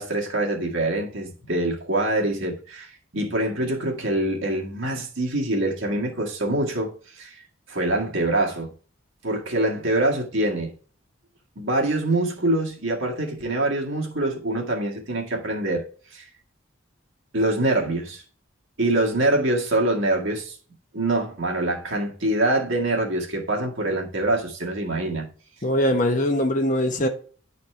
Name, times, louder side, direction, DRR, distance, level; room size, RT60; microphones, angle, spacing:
voice 1, 0.0-8.7 9.2-10.7 11.6-15.8 16.1-16.3 17.3-18.2 18.8-20.6 20.9-25.3, right 1 dB, 70° right, 1.8 m, -25 dB
voice 2, 25.6-27.1, left 1 dB, 35° left, 1.0 m, -21 dB
10.5 x 4.2 x 3.3 m
head